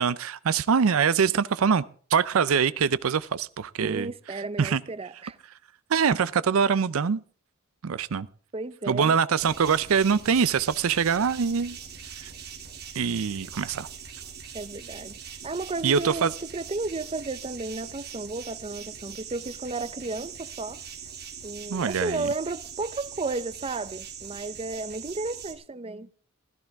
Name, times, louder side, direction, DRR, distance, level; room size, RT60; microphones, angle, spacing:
voice 1, 0.0-1.8 2.1-4.8 5.9-7.2 7.8-8.3 8.9-11.8 12.2-12.3 13.0-13.9 15.8-16.3 21.7-22.3, right 6 dB, 75° right, 0.5 m, -24 dB
voice 2, 3.8-5.4 8.5-9.1 14.5-20.8 21.4-26.1, right 3 dB, 25° right, 0.6 m, -33 dB
sound 1, 9.4-25.5, right 7 dB, 50° right, 2.6 m, -42 dB
15.5 x 13.5 x 3.5 m
head